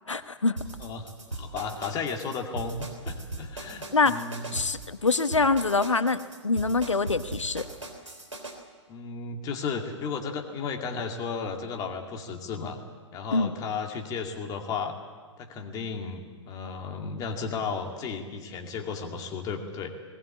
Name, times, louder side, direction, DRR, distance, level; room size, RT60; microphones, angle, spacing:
voice 1, 0.1-0.6 3.9-4.2 4.5-6.2 6.4-7.6 13.3-13.5, left 3 dB, 75° left, 12 dB, 1.1 m, -24 dB
sound 1, 0.6-8.6, right 2 dB, 80° right, 3.6 m, -38 dB
voice 2, 0.8-4.5 8.9-12.8 13.1-15.0 15.4-19.9, left 5 dB, 25° left, 3 dB, 2.3 m, -34 dB
20.0 x 19.0 x 8.5 m, 1.5 s
figure-of-eight pair, 115°, 16 cm